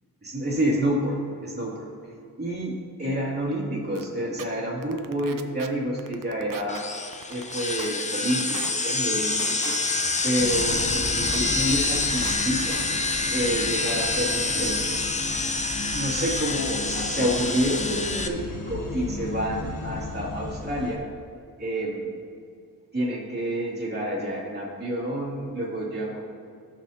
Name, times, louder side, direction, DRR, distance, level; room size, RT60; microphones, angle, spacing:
voice 1, 0.2-1.9 2.4-6.9 7.3-9.8 10.2-12.8 13.3-14.8 15.9-21.1 21.6-22.1 22.9-26.2, equal, 25° right, -5 dB, 2.4 m, -28 dB
sound 1, 3.9-4.0 4.4-4.5 4.8-5.7 6.0-6.8 7.1-7.9 8.3-8.7 9.1-9.8 10.2-11.4 11.7-12.4 12.7-12.9, right 8 dB, 60° right, 0.6 m, -39 dB
sound 2, 6.7-18.3, left 3 dB, 20° left, 0.5 m, -27 dB
sound 3, 10.4-21.0, left 2 dB, 60° left, 1.1 m, -35 dB
15.5 x 6.5 x 2.8 m, 2.3 s
wide cardioid pair, 130°, 37 cm